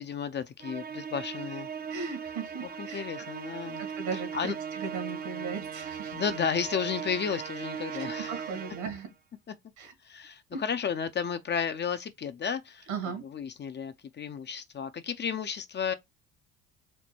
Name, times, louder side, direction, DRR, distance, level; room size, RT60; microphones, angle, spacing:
voice 1, 0.0-1.7 2.8-3.8 4.3-4.5 6.1-8.3 9.5-9.6 10.0-12.9 13.3-15.9, left 7 dB, 30° left, 0.5 m, -33 dB
Musical instrument, 0.6-9.1, right 7 dB, 25° right, 0.4 m, -38 dB
voice 2, 1.9-3.1 3.8-6.2 7.9-9.1 9.8-9.9 10.5-10.6 12.9-13.2, right 5 dB, 80° right, 2.0 m, -37 dB
4.5 x 2.2 x 4.2 m
supercardioid pair, 75°, 35 cm